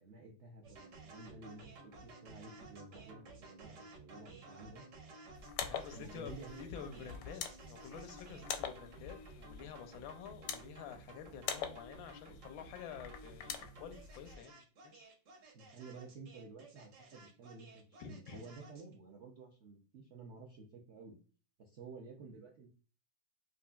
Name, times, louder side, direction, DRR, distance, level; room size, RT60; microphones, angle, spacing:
voice 1, 0.0-4.9 5.9-6.7 6.9-7.0 15.5-21.2 21.6-22.7, right 4 dB, 80° right, 0 dB, 0.6 m, -52 dB
sound 1, 0.6-18.9, right 2 dB, 60° right, 1.6 m, -55 dB
sound 2, 5.4-14.3, left 7 dB, 70° left, 0.8 m, -45 dB
voice 2, 5.7-15.1 18.0-18.4, left 7 dB, 85° left, 7 dB, 1.4 m, -49 dB
5.1 x 2.5 x 2.3 m, 0.37 s
omnidirectional pair, 2.1 m